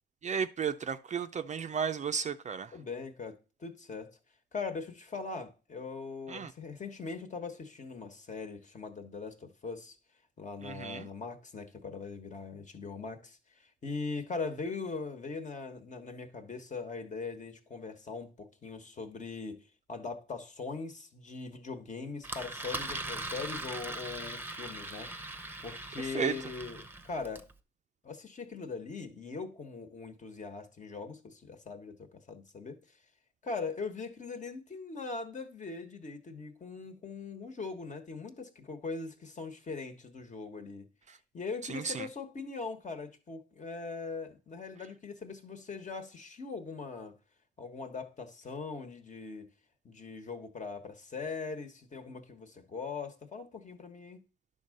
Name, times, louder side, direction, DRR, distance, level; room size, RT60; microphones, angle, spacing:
voice 1, 0.2-2.7 6.3-6.5 10.6-11.1 26.1-26.3 41.7-42.1, right 6 dB, 35° right, 0.5 m, -33 dB
voice 2, 2.7-4.2 4.5-10.0 10.4-19.6 19.9-25.1 25.6-27.5 28.0-33.0 33.4-40.9 41.3-47.2 47.6-49.5 49.8-54.2, left 4 dB, 40° left, 1.4 m, -41 dB
Engine, 22.2-27.5, right 2 dB, 10° right, 0.8 m, -40 dB
10.0 x 3.8 x 6.5 m
cardioid pair, 90°, 20 cm